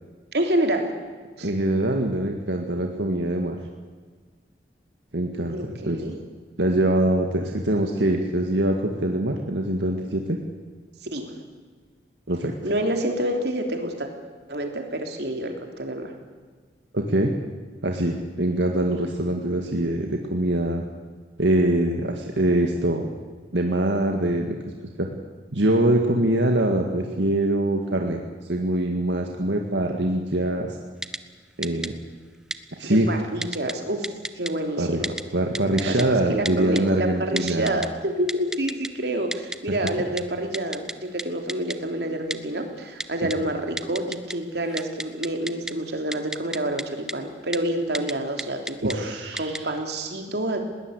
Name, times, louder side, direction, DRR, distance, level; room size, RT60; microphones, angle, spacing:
voice 1, 0.3-0.9 1.4-1.5 5.5-6.2 11.0-11.3 12.6-14.1 14.5-16.1 32.8-34.1 34.3-35.2 35.8-36.0 36.3-50.6, right 1 dB, 65° right, 4 dB, 3.4 m, -28 dB
voice 2, 1.4-3.6 5.1-6.0 6.6-10.4 12.3-12.5 16.9-17.3 17.8-20.8 21.4-23.1 23.5-24.6 25.0-25.1 25.5-28.2 28.5-30.8 31.6-31.9 32.8-33.1 34.8-35.0 35.3-37.8 48.8-49.7, right 1 dB, 90° right, 2 dB, 2.0 m, -23 dB
Typing, 31.0-31.2 31.6-31.9 32.5-32.6 33.4-33.7 34.0-34.5 35.0-35.2 35.5-36.0 36.4-36.8 37.4-37.9 38.3-38.9 39.3-39.6 39.9-40.0 40.2-40.3 40.5-40.9 41.2-41.3 41.5-41.8 42.3-42.4 43.0-43.4 43.8-44.3 44.6-45.7 46.1-46.8 47.1-47.2 47.5-47.6 47.9-48.1 48.4-48.9 49.4-49.6, right 1 dB, 5° right, 0.7 m, -30 dB
20.5 x 18.5 x 8.3 m, 1.5 s
head